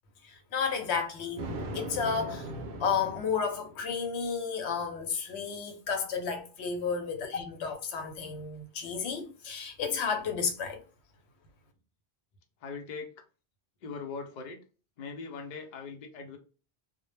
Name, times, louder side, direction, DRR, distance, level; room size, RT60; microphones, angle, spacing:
voice 1, 0.2-2.5 2.8-10.8, left 6 dB, 80° left, 0.8 m, -32 dB
Thunder, 1.4-3.9, right 1 dB, 65° right, 0.7 m, -39 dB
voice 2, 12.6-13.1 13.8-14.6 15.0-16.4, left 4 dB, 55° left, 0.5 m, -40 dB
2.1 x 2.0 x 3.1 m
omnidirectional pair, 1.1 m